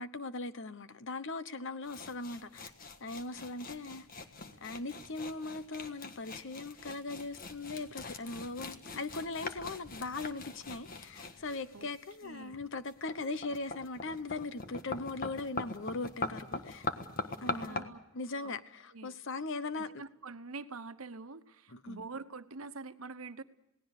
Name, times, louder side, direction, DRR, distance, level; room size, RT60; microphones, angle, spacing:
voice 1, 0.0-2.7 3.0-4.1 4.6-16.9 17.4-19.9 21.7-22.0, left 3 dB, 65° left, 1.1 m, -39 dB
sound 1, 1.8-17.8, left 3 dB, 45° left, 1.6 m, -42 dB
voice 2, 12.2-12.6 17.4-18.0 18.4-18.6 18.9-19.2 19.7-23.4, right 4 dB, 85° right, 1.1 m, -45 dB
28.5 x 18.0 x 6.7 m
head